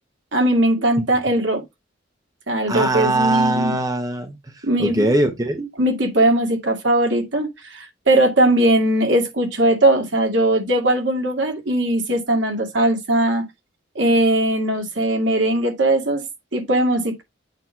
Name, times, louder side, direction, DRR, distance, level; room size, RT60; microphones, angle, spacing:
voice 1, 0.3-1.6 2.5-3.7 4.6-5.1 5.8-13.4 14.0-16.2 16.5-17.2, right 1 dB, 65° right, 2.2 m, -19 dB
voice 2, 2.7-5.7, right 1 dB, 20° right, 0.9 m, -21 dB
8.2 x 2.9 x 5.6 m
head